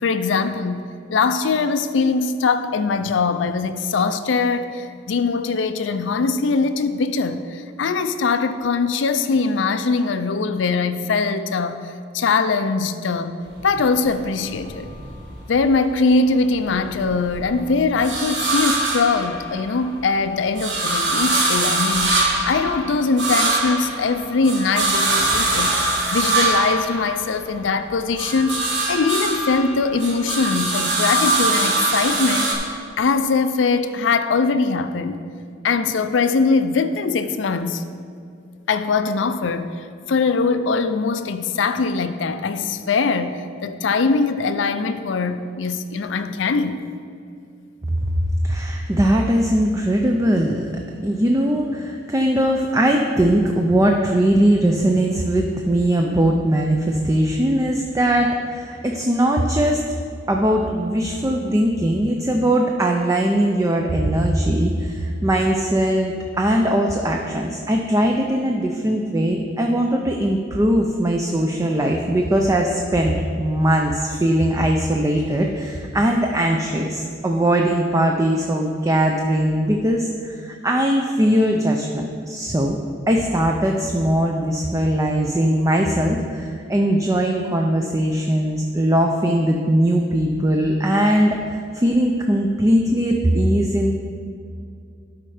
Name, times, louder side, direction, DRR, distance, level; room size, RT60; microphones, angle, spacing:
voice 1, 0.0-14.9 15.5-35.2 35.6-37.8 38.7-46.8, left 4 dB, 85° left, 10 dB, 0.5 m, -22 dB
sound 1, 13.5-15.8 16.2-19.9 20.2-27.7 28.0-32.6, right 2 dB, 65° right, 1.4 m, -23 dB
voice 2, 48.4-50.7 51.0-59.9 60.3-82.8 83.1-93.9, right 1 dB, 15° right, 2 dB, 0.4 m, -20 dB
12.0 x 4.4 x 4.9 m, 2.4 s
head